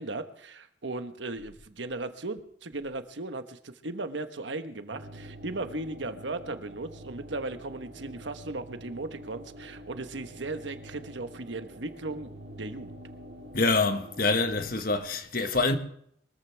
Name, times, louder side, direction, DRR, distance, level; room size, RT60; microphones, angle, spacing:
voice 1, 0.0-12.3 12.6-13.0, right 2 dB, 90° right, 1.2 m, -37 dB
sound 1, 4.9-14.8, right 1 dB, 70° right, 2.3 m, -46 dB
voice 2, 13.5-15.8, left 3 dB, 50° left, 1.3 m, -26 dB
23.5 x 14.0 x 3.4 m
head